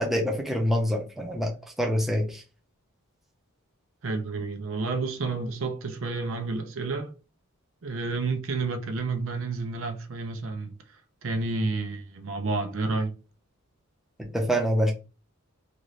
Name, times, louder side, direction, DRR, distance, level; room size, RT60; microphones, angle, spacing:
voice 1, 0.0-1.5 1.8-2.4 14.2-14.9, equal, ahead, 0.6 m, -25 dB
voice 2, 4.0-7.1 7.8-10.7 11.2-13.1, right 3 dB, 60° right, 0.5 m, -30 dB
2.5 x 2.5 x 3.1 m
head